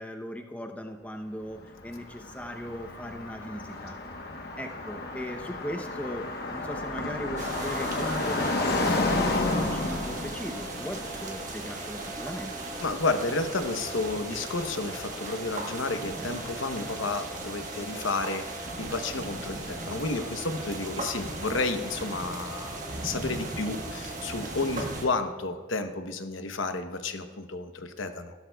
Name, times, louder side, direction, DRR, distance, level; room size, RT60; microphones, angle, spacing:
voice 1, 0.0-4.0 4.6-12.5, equal, 5° left, 4 dB, 0.7 m, -38 dB
Car passing by, 1.5-13.6, left 2 dB, 55° left, 1.1 m, -32 dB
sound 1, 7.4-25.1, right 2 dB, 40° right, 1.4 m, -37 dB
voice 2, 12.8-28.3, left 3 dB, 85° left, 7 dB, 0.9 m, -31 dB
16.0 x 12.5 x 2.3 m, 1.4 s
head